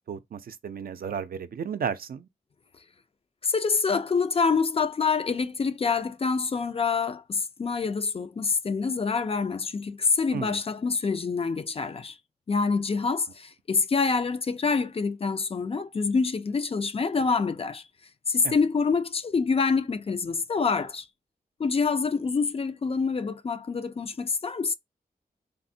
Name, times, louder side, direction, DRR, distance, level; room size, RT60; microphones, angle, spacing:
voice 1, 0.1-2.3 10.3-10.6 18.4-18.5, right 7 dB, 65° right, 0.4 m, -33 dB
voice 2, 3.4-12.2 12.5-17.8 18.3-21.1 21.6-24.7, left 5 dB, 35° left, 0.4 m, -26 dB
3.4 x 2.0 x 2.6 m
cardioid pair, 45°, 16 cm